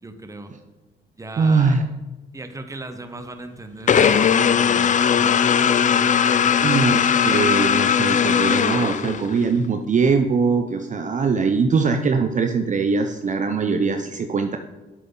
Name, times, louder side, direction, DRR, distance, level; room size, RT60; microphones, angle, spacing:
voice 1, 0.0-0.5 1.2-1.8 2.3-4.0 4.6-6.8, right 2 dB, 15° right, 8 dB, 0.9 m, -38 dB
voice 2, 1.4-1.8 6.6-14.6, right 4 dB, 40° right, 6 dB, 0.6 m, -21 dB
sound 1, 3.9-9.5, left 8 dB, 40° left, 0.5 m, -18 dB
8.3 x 7.1 x 3.8 m, 1.2 s
cardioid pair, 90°, 20 cm